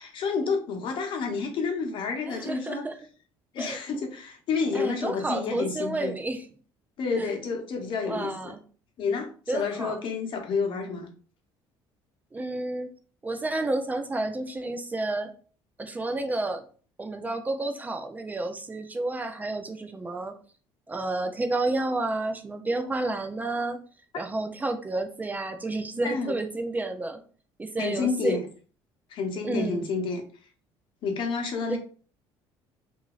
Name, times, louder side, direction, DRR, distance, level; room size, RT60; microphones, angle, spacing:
voice 1, 0.0-2.8 3.5-6.1 7.0-8.5 9.0-11.1 26.0-26.3 27.8-28.5 29.1-30.2 31.0-31.8, left 5 dB, 55° left, 3 dB, 0.8 m, -29 dB
voice 2, 2.3-2.9 3.6-3.8 4.7-6.4 7.2-7.3 8.1-8.6 9.5-10.0 12.3-12.9 13.2-15.3 15.8-16.6 17.0-20.4 20.9-23.8 24.2-27.2 27.6-28.4 29.4-29.8 31.7-31.8, right 2 dB, 15° right, 7 dB, 0.4 m, -30 dB
2.9 x 2.6 x 2.3 m, 0.40 s
cardioid pair, 110°, 10 cm